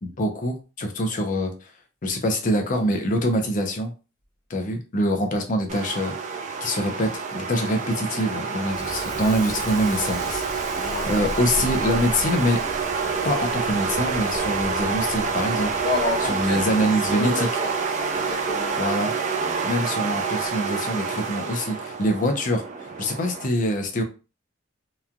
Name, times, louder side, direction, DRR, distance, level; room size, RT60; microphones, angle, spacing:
voice 1, 0.0-1.7 2.0-3.9 4.5-6.2 6.6-12.6 13.2-15.7 16.2-17.5 18.8-19.1 19.6-22.6 23.0-24.0, equal, 40° left, 0.5 m, -25 dB
sound 1, 5.7-23.5, right 5 dB, 40° right, 0.4 m, -28 dB
Crackle, 8.6-17.5, equal, 20° right, 0.9 m, -38 dB
voice 2, 10.7-11.1 15.8-16.7 17.1-18.8 19.4-19.6, left 2 dB, 20° left, 1.0 m, -30 dB
2.9 x 2.2 x 2.5 m
head